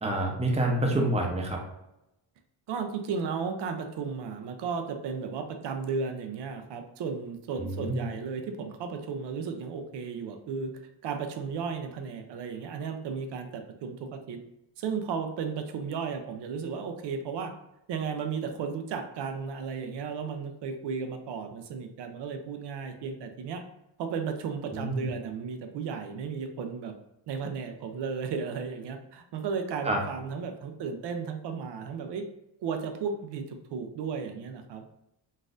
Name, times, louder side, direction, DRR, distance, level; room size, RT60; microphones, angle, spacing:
voice 1, 0.0-1.6 7.6-8.1 24.7-25.1 29.8-30.0, right 1 dB, 15° right, 0 dB, 0.6 m, -27 dB
voice 2, 2.7-10.7 11.0-14.4 14.8-17.5 17.9-23.6 24.0-26.9 27.3-32.2 32.6-34.8, right 5 dB, 65° right, 6 dB, 0.5 m, -34 dB
4.0 x 2.5 x 2.5 m, 0.85 s
cardioid pair, 110°, 46 cm